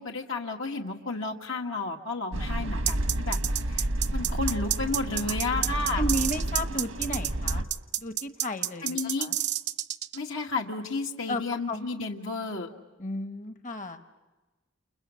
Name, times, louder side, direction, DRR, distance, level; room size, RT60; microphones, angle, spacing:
voice 1, 0.0-3.4 3.7-6.0 8.8-9.3 10.1-12.7, left 3 dB, 80° left, 0 dB, 1.8 m, -32 dB
sound 1, 2.3-7.6, right 1 dB, 85° right, 1.5 m, -30 dB
sound 2, 2.9-10.2, right 12 dB, 55° right, 0.8 m, -29 dB
voice 2, 6.0-7.7 8.0-9.3 11.3-11.4 11.7-11.9 13.0-14.0, equal, 40° left, 7 dB, 1.1 m, -33 dB
29.5 x 29.0 x 6.3 m, 1.2 s
head